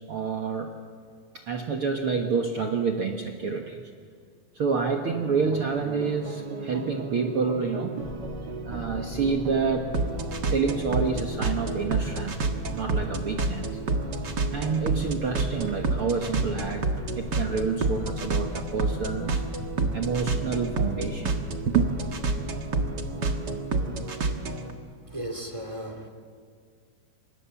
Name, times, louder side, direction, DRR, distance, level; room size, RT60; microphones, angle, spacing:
voice 1, 0.1-0.7 1.3-3.8 4.5-8.0 8.6-10.2 10.5-12.4 12.7-13.8 14.5-16.9 17.2-19.4 19.9-21.3 21.7-21.9, right 5 dB, 80° right, 3 dB, 1.2 m, -28 dB
sound 1, 5.1-24.7, right 3 dB, 60° right, 1.1 m, -30 dB
sound 2, 8.0-23.5, left 2 dB, 40° left, 0.6 m, -40 dB
voice 2, 25.0-26.1, right 1 dB, 10° right, 4 dB, 1.5 m, -35 dB
29.0 x 26.5 x 7.1 m, 2.1 s
omnidirectional pair, 4.9 m